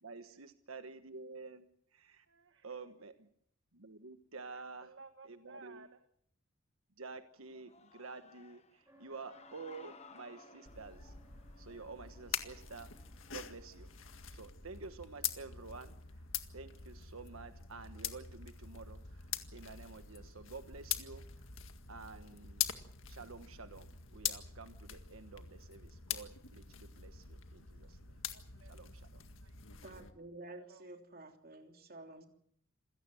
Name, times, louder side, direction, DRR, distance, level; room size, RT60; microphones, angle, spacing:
voice 1, 0.0-2.3 2.6-3.3 3.7-4.9 5.2-5.9 7.0-11.2 11.6-13.0 13.3-13.9 14.3-16.2 16.5-21.5 21.9-22.8 23.1-28.2 28.7-29.2, right 4 dB, 85° right, 9 dB, 1.3 m, -50 dB
voice 2, 2.3-3.1 4.5-6.0 28.3-28.8 29.4-29.6 30.6-30.9, right 4 dB, 60° right, 8 dB, 1.4 m, -58 dB
Human voice / Cheering, 7.4-14.0, left 5 dB, 30° left, 1.3 m, -61 dB
sound 1, 8.9-16.3, right 1 dB, 15° right, 4.7 m, -66 dB
sound 2, 10.7-30.1, left 10 dB, 70° left, 1.9 m, -44 dB
voice 3, 29.8-32.3, right 2 dB, 45° right, 4 dB, 3.2 m, -51 dB
27.0 x 17.0 x 7.7 m, 0.69 s
head